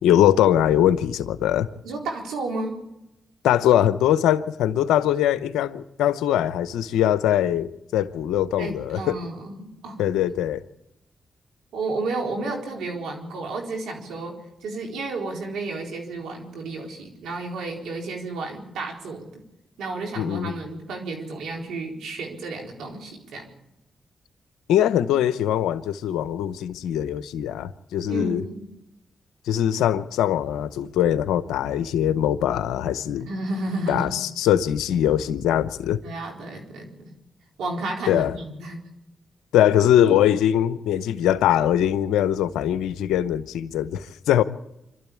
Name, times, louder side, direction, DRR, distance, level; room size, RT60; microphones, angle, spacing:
voice 1, 0.0-1.7 3.4-9.2 10.0-10.6 20.2-20.5 24.7-28.4 29.5-33.3 33.9-36.0 38.1-38.3 39.5-44.4, left 11 dB, 85° left, 0.8 m, -22 dB
voice 2, 1.8-2.8 8.6-10.0 11.7-14.3 14.6-19.4 19.8-23.5 28.1-28.7 33.3-34.2 36.0-37.1 37.6-38.8, right 2 dB, 85° right, 4.1 m, -32 dB
26.5 x 12.5 x 8.5 m
supercardioid pair, 45°, 0 cm